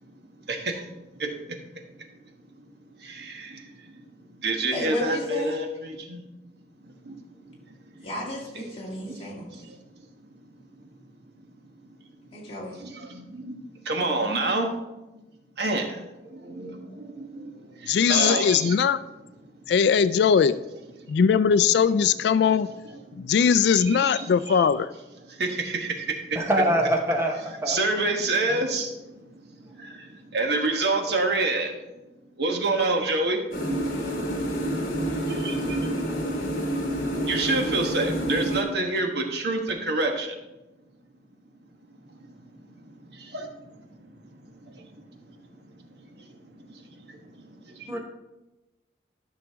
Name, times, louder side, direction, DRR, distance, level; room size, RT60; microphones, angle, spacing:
voice 1, 0.5-1.6 3.0-4.0 4.4-6.2 6.8-7.2 7.5-7.6 8.0-8.1 9.1-9.8 12.7-13.6 13.8-14.7 15.6-18.7 21.0-21.2 22.5-22.9 23.8-24.7 25.3-26.4 27.7-31.8 32.4-33.4 35.3-35.9 37.3-40.4 42.1-42.2 42.8-43.9 44.2-45.0 45.3-45.4 46.0-48.0, right 2 dB, 70° right, 3 dB, 1.2 m, -29 dB
voice 2, 4.7-5.5 8.0-9.7 12.3-12.8 18.2-18.4, left 1 dB, 30° left, -4 dB, 2.2 m, -34 dB
voice 3, 17.9-19.0 19.7-20.5 21.1-22.7 23.2-24.9, left 7 dB, 70° left, 15 dB, 0.3 m, -20 dB
voice 4, 26.3-27.8 47.9-48.0, right 1 dB, 15° right, 1 dB, 1.0 m, -24 dB
Electric Kettle Boiling, 33.5-38.6, equal, 55° left, 1.9 m, -28 dB
12.0 x 6.2 x 3.5 m, 1.0 s
head